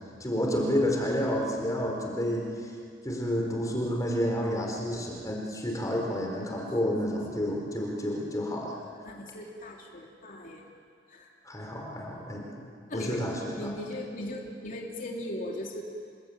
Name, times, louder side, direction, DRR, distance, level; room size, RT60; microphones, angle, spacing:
voice 1, 0.2-2.5 3.0-8.8 11.5-12.6 12.9-13.7, equal, 20° left, 0 dB, 4.0 m, -30 dB
voice 2, 9.0-10.6 11.1-11.3 12.9-13.2 13.5-15.8, left 1 dB, 45° left, -1 dB, 3.1 m, -38 dB
28.5 x 20.5 x 9.1 m, 2.3 s
head